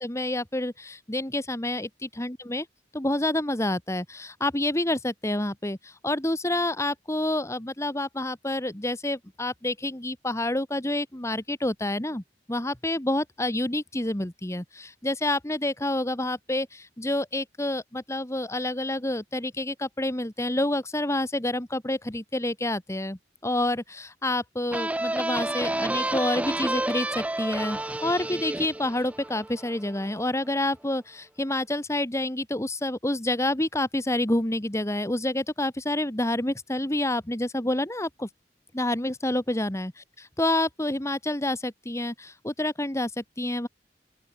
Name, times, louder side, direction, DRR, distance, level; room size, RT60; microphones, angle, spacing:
voice 1, 0.0-2.7 2.9-12.2 12.5-38.3 38.7-39.9 40.4-43.7, left 1 dB, 15° left, 1.8 m, -28 dB
sound 1, 24.7-30.2, right 1 dB, 10° right, 0.4 m, -30 dB
open air
head